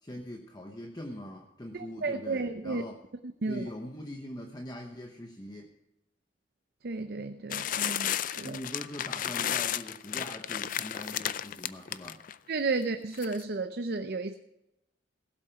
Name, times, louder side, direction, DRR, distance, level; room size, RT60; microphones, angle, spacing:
voice 1, 0.0-3.0 3.5-5.7 8.4-12.2, left 1 dB, 25° left, 2 dB, 0.9 m, -42 dB
voice 2, 1.7-2.8 3.4-3.7 6.8-8.6 12.5-14.3, right 3 dB, 60° right, 8 dB, 0.6 m, -33 dB
sound 1, 7.5-12.4 13.1-13.4, left 10 dB, 50° left, 0.4 m, -33 dB
16.5 x 7.9 x 5.7 m, 0.87 s
head